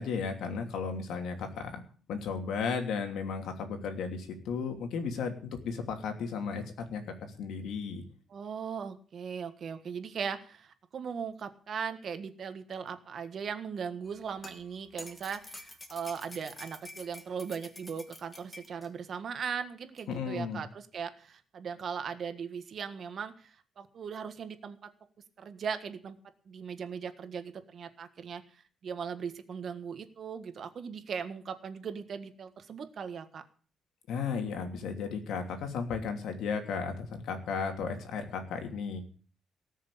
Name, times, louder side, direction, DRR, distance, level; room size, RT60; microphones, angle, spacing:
voice 1, 0.0-1.8 2.1-8.0 20.1-20.6 34.1-39.0, left 5 dB, 85° left, 5 dB, 2.9 m, -34 dB
voice 2, 8.3-24.8 25.4-26.2 26.5-33.4, right 6 dB, 45° right, 9 dB, 1.6 m, -39 dB
sound 1, 14.0-18.9 20.0-20.1, left 1 dB, 15° left, 2.0 m, -48 dB
18.5 x 6.6 x 8.5 m, 0.42 s
cardioid pair, 150°, 0 cm